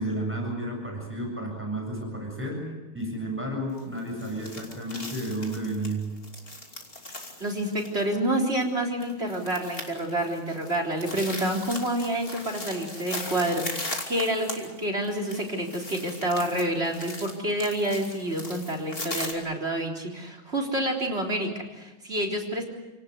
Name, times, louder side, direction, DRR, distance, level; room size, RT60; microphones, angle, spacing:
voice 1, 0.0-6.1, right 1 dB, 5° right, 1 dB, 7.5 m, -32 dB
sound 1, 3.8-19.3, left 2 dB, 30° left, 3.0 m, -39 dB
voice 2, 7.4-22.6, right 1 dB, 30° right, 4 dB, 4.1 m, -28 dB
29.5 x 18.5 x 8.2 m, 1.1 s
omnidirectional pair, 2.1 m